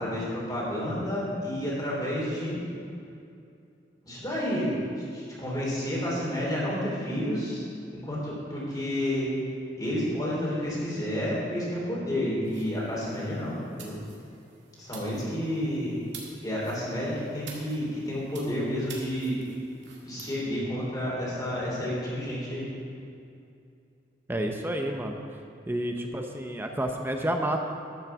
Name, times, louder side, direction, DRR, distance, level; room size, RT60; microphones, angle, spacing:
voice 1, 0.0-2.6 4.0-4.7 5.1-7.6 8.0-9.3 9.8-14.0 14.8-16.0 16.4-19.4 20.0-22.7, equal, 20° left, -6 dB, 3.2 m, -30 dB
sound 1, 12.4-20.3, right 5 dB, 75° right, 2.0 m, -49 dB
voice 2, 24.3-25.2 25.7-27.6, right 1 dB, 10° right, 3 dB, 0.6 m, -30 dB
12.0 x 6.4 x 7.0 m, 2.5 s
head